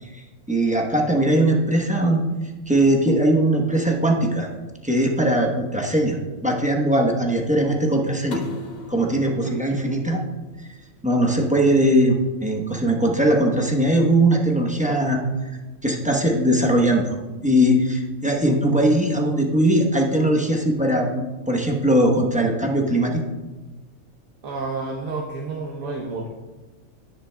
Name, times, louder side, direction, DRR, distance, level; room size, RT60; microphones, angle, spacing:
voice 1, 0.0-2.2 2.7-4.5 4.8-8.4 8.9-10.2 10.6-10.7 11.0-15.5 15.8-17.2 17.4-23.2, right 1 dB, 5° right, 0 dB, 0.9 m, -20 dB
sound 1, 8.3-11.1, left 3 dB, 40° left, 0.8 m, -38 dB
voice 2, 24.4-26.3, right 3 dB, 75° right, -1 dB, 1.3 m, -30 dB
10.5 x 10.0 x 2.3 m, 1.2 s
omnidirectional pair, 1.5 m